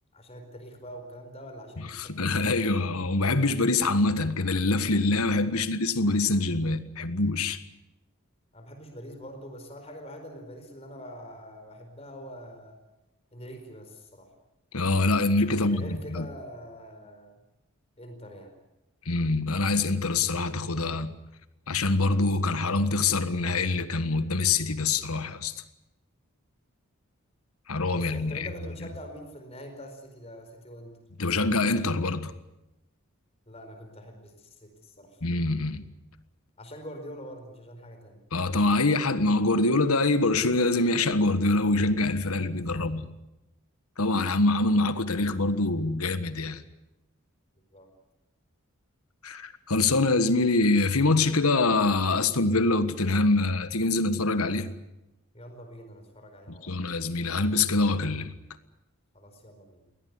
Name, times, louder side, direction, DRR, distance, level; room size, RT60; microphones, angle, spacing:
voice 1, 0.1-2.5 5.5-5.7 8.5-12.8 13.3-14.3 15.5-17.4 18.0-18.5 27.9-31.0 33.5-35.2 36.6-38.2 42.7-42.8 47.7-47.9 55.3-56.8 59.1-59.8, equal, 30° left, 4.6 m, -44 dB
voice 2, 1.9-7.6 14.7-16.3 19.0-21.1 21.7-25.5 27.7-28.5 31.2-32.3 35.2-35.8 38.3-43.1 44.0-46.6 49.2-54.7 56.6-58.3, left 2 dB, 80° left, 1.5 m, -25 dB
22.0 x 18.0 x 9.6 m
head